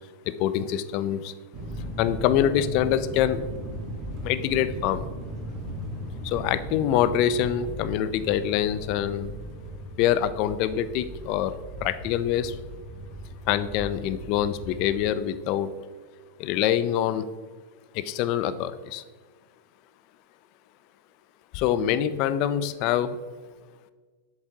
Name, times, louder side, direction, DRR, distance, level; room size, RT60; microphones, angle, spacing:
voice 1, 0.4-1.3 2.0-3.4 4.2-5.0 6.2-9.3 10.0-11.5 11.8-12.5 13.5-15.7 16.4-17.3 17.9-19.0 21.5-23.2, left 10 dB, 50° left, 13 dB, 0.5 m, -25 dB
sound 1, 1.5-15.1, right 1 dB, 45° right, 1.2 m, -37 dB
7.7 x 7.3 x 2.8 m, 1.4 s
supercardioid pair, 130°, 0 cm